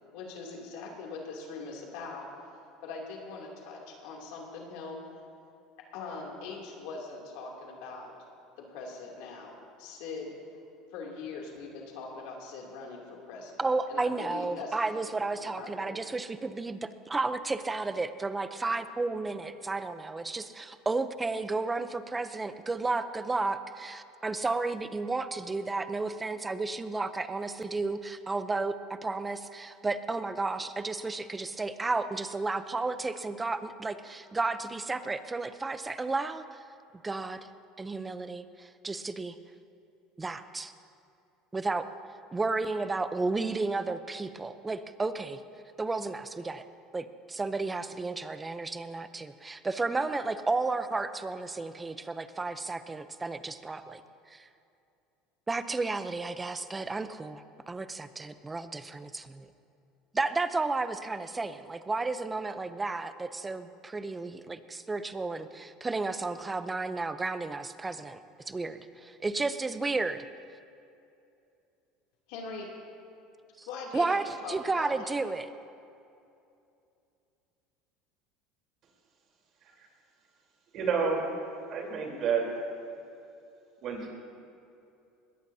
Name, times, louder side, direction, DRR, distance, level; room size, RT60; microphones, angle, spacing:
voice 1, 0.1-2.3 2.8-5.0 5.9-8.1 8.6-9.5 9.8-10.3 10.9-16.0 72.3-72.7 73.7-75.2, left 4 dB, 75° left, -1 dB, 2.9 m, -42 dB
voice 2, 13.6-36.6 37.0-37.5 37.8-39.4 40.2-40.7 41.5-41.9 42.3-45.4 45.8-46.6 46.9-54.0 54.3-54.5 55.5-59.5 60.1-68.2 68.5-70.2 73.6-73.7 73.9-75.5, right 3 dB, 15° right, 11 dB, 0.7 m, -32 dB
voice 3, 80.7-81.3 81.7-82.4 83.8-84.1, right 5 dB, 50° right, 0 dB, 3.7 m, -29 dB
21.0 x 17.5 x 2.8 m, 2.6 s
supercardioid pair, 120°, 0 cm